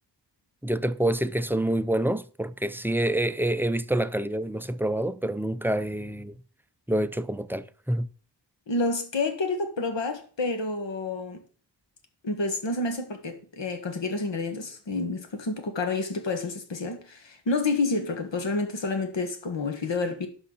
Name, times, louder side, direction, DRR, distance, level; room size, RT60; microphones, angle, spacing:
voice 1, 0.6-6.4 6.9-8.1, right 1 dB, 5° right, 0.4 m, -27 dB
voice 2, 8.7-11.4 12.2-20.3, left 3 dB, 70° left, 1.8 m, -29 dB
11.0 x 6.4 x 4.0 m
wide cardioid pair, 95°, 45 cm